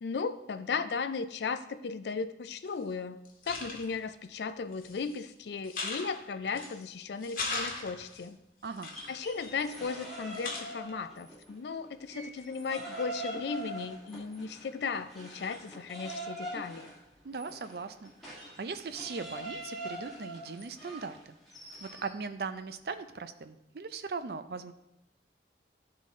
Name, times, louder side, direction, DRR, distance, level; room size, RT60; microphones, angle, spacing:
voice 1, 0.0-3.2 3.5-8.4 9.1-16.9, left 5 dB, 75° left, 11 dB, 0.4 m, -36 dB
sound 1, 2.7-2.8 3.3-4.0 4.7-5.2 5.6-6.8 7.2-8.2 8.8-10.0 10.3-10.9, left 3 dB, 50° left, 1.1 m, -39 dB
voice 2, 8.6-8.9 17.2-21.4 21.8-24.7, right 4 dB, 60° right, 11 dB, 0.4 m, -39 dB
sound 2, 8.8-11.5 11.8-22.1, right 1 dB, ahead, 1.8 m, -43 dB
11.0 x 3.8 x 3.7 m, 0.87 s
head